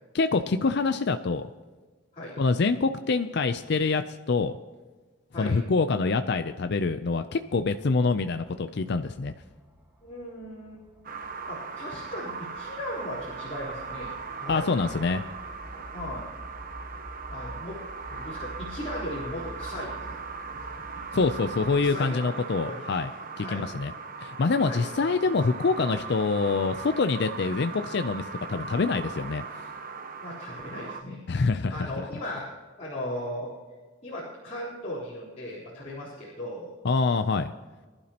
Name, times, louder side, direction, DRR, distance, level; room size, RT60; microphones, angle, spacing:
voice 1, 0.1-1.5 2.4-4.5 5.4-9.3 14.5-15.2 21.1-23.1 23.4-23.9 24.2-29.4 31.3-31.9 36.8-37.5, left 4 dB, 60° left, 9 dB, 0.5 m, -25 dB
sound 1, 7.6-21.8, equal, 10° right, 1.6 m, -48 dB
voice 2, 10.0-10.8 11.5-14.7 15.9-16.3 17.3-17.8 18.1-20.1 20.5-20.6 20.9-21.0 21.8-22.3 22.6-22.8 23.4-23.7 24.6-25.0 30.2-31.2 31.7-32.5 32.8-33.5 34.0-36.7, left 1 dB, 35° left, -10 dB, 3.9 m, -37 dB
sound 2, 11.0-31.0, right 5 dB, 45° right, 1.0 m, -39 dB
24.0 x 11.5 x 2.9 m, 1.4 s
head